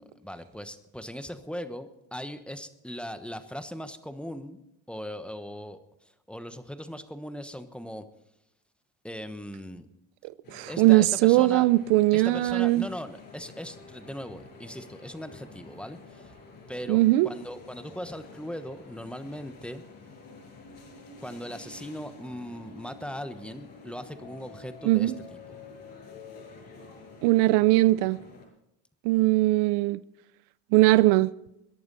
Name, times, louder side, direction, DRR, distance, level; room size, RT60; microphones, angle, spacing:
voice 1, 0.0-4.6 4.9-8.1 9.0-9.9 10.7-11.7 12.1-16.3 16.7-19.8 21.2-25.6, equal, 5° left, 1.2 m, -39 dB
sound 1, 10.4-28.4, left 4 dB, 55° left, 6.3 m, -49 dB
voice 2, 10.5-12.9 16.9-17.3 24.8-25.1 27.2-28.2 29.0-30.0 30.7-31.3, right 18 dB, 80° right, 0.5 m, -20 dB
22.0 x 11.0 x 4.1 m
supercardioid pair, 85°, 40 cm